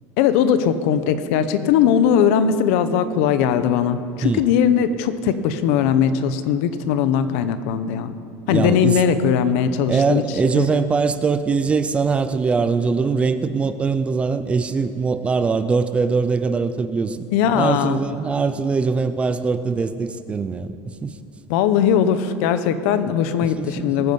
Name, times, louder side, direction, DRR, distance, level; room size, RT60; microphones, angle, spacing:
voice 1, 0.2-8.1 8.5-10.2 10.5-10.8 17.3-18.0 21.5-24.1, left 8 dB, 70° left, 12 dB, 0.9 m, -19 dB
voice 2, 8.5-9.0 9.9-17.2 17.5-20.8 21.0-21.2 23.6-24.1, right 5 dB, 15° right, 11 dB, 0.4 m, -22 dB
21.0 x 9.5 x 5.4 m, 2.4 s
cardioid pair, 175°, 8 cm